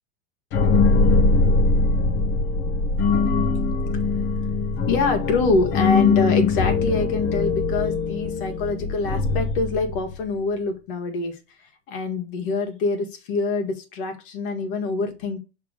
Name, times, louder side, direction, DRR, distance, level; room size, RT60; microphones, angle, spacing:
sound 1, 0.5-10.2, left 4 dB, 40° left, 1.0 m, -21 dB
voice 1, 4.9-15.4, left 3 dB, 55° left, 4 dB, 1.7 m, -25 dB
5.8 x 3.4 x 5.0 m, 0.29 s
supercardioid pair, 130°, 31 cm